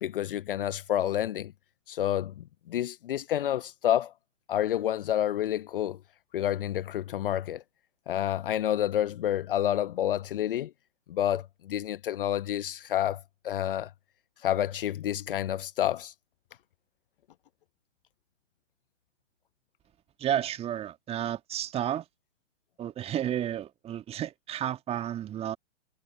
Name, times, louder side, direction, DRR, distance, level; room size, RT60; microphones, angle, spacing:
voice 1, 0.0-1.5 1.9-4.1 4.5-6.0 6.3-7.6 8.1-10.7 11.1-13.9 14.4-16.1, left 11 dB, 45° left, 1.0 m, -29 dB
voice 2, 20.2-22.1 22.8-25.6, right 10 dB, 15° right, 1.8 m, -32 dB
figure-of-eight pair, 120°, 38 cm